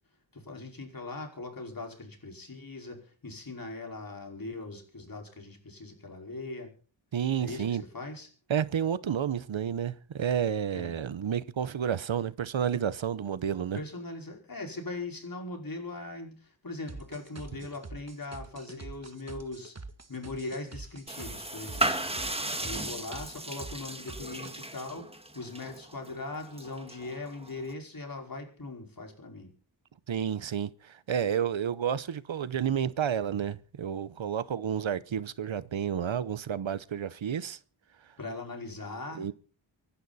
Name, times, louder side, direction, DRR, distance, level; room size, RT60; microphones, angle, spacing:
voice 1, 0.3-6.7 7.4-8.3 10.7-11.0 13.7-19.8 20.1-22.0 22.6-29.5 38.2-39.3, left 2 dB, 45° left, 5.2 m, -40 dB
voice 2, 7.1-7.8 8.5-13.8 30.1-37.6 39.2-39.3, right 8 dB, 75° right, 0.9 m, -30 dB
sound 1, 16.9-24.5, right 3 dB, 35° right, 1.6 m, -45 dB
sound 2, 21.1-27.7, right 1 dB, 10° right, 1.9 m, -36 dB
25.5 x 11.5 x 4.2 m
wide cardioid pair, 80°, 46 cm